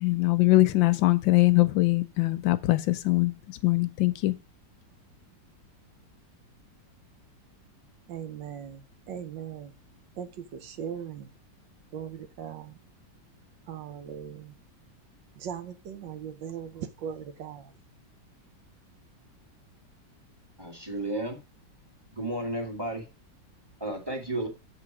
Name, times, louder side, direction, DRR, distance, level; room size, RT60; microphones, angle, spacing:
voice 1, 0.0-3.3 3.6-4.3, left 19 dB, 90° left, 1.4 m, -22 dB
voice 2, 8.1-8.8 9.1-9.7 10.2-11.3 11.9-12.8 13.7-14.5 15.4-17.7, right 8 dB, 80° right, 1.5 m, -39 dB
voice 3, 20.6-21.4 22.1-23.0 23.8-24.5, right 1 dB, 15° right, 1.8 m, -32 dB
7.5 x 3.9 x 5.9 m
omnidirectional pair, 2.0 m